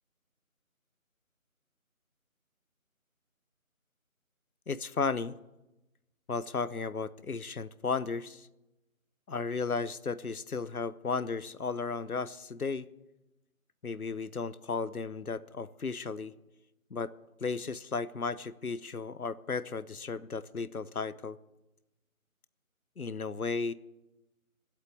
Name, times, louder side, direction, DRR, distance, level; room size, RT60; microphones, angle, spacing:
voice 1, 4.7-5.4 6.3-8.5 9.3-12.9 13.8-16.4 16.9-17.1 17.4-21.4 23.0-23.7, left 4 dB, 85° left, 0.9 m, -34 dB
19.5 x 8.2 x 8.5 m
figure-of-eight pair, 165°, 43 cm